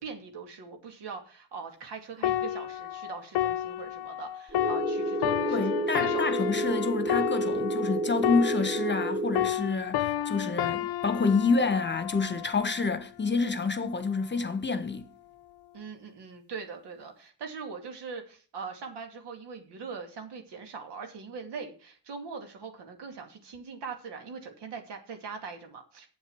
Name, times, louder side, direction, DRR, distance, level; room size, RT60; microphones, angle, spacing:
voice 1, 0.0-6.8 15.7-26.1, right 5 dB, 70° right, 2.5 m, -41 dB
sound 1, 2.2-9.1 9.3-12.9 13.6-13.8, left 12 dB, 65° left, 0.8 m, -31 dB
sound 2, 4.5-9.5, right 1 dB, ahead, 2.9 m, -30 dB
voice 2, 5.5-15.1, left 4 dB, 25° left, 1.3 m, -28 dB
8.0 x 7.3 x 6.3 m
supercardioid pair, 60°, 42 cm